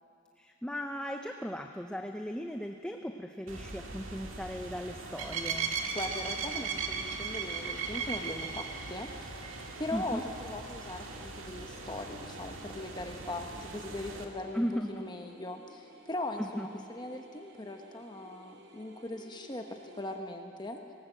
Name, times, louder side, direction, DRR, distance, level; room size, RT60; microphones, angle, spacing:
voice 1, 0.4-5.8 9.9-10.2 14.5-14.9 16.4-16.8, equal, 5° left, 4 dB, 0.6 m, -37 dB
sound 1, 3.5-14.2, right 5 dB, 75° right, 2.0 m, -38 dB
voice 2, 5.9-9.1 9.3-9.5 9.8-20.8, left 1 dB, 20° left, 4 dB, 1.0 m, -40 dB
sound 2, 7.5-20.2, equal, 50° right, 2.1 m, -56 dB
19.5 x 18.5 x 7.9 m, 2.5 s
head